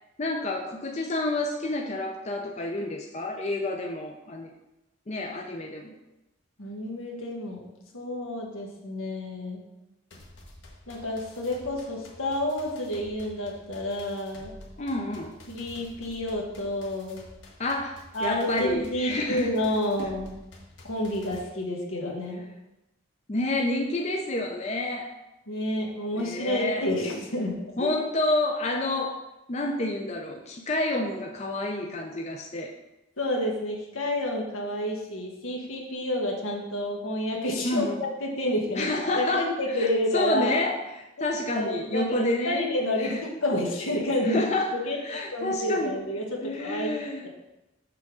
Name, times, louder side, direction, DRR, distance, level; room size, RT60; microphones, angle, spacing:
voice 1, 0.2-4.5 5.1-6.0 14.8-15.3 17.6-19.5 20.0-20.1 23.3-25.1 26.1-26.9 27.8-29.2 29.5-32.7 37.6-38.0 38.8-39.9 40.1-42.7 43.0-43.2 44.2-46.0 46.4-47.3, left 2 dB, 35° left, 1 dB, 0.5 m, -29 dB
voice 2, 6.6-7.6 7.9-9.6 10.9-14.5 15.5-17.2 18.1-20.3 20.8-22.4 25.5-27.9 33.2-38.9 39.1-40.6 41.2-44.5 44.8-46.9 47.2-47.3, left 1 dB, 90° left, 0 dB, 1.5 m, -29 dB
sound 1, 10.1-21.4, left 1 dB, 60° left, 1.2 m, -49 dB
6.8 x 3.5 x 6.2 m, 0.95 s
head